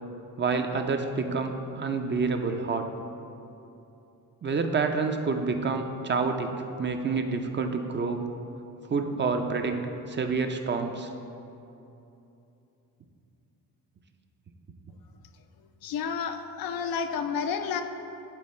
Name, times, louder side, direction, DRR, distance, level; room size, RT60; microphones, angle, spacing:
voice 1, 0.4-2.9 4.4-6.5 6.8-8.2 8.9-9.8 10.1-11.1, right 4 dB, 30° right, 5 dB, 0.5 m, -28 dB
voice 2, 15.8-17.8, left 6 dB, 75° left, 7 dB, 0.6 m, -30 dB
11.0 x 3.8 x 4.3 m, 2.8 s
cardioid pair, 90°, 35 cm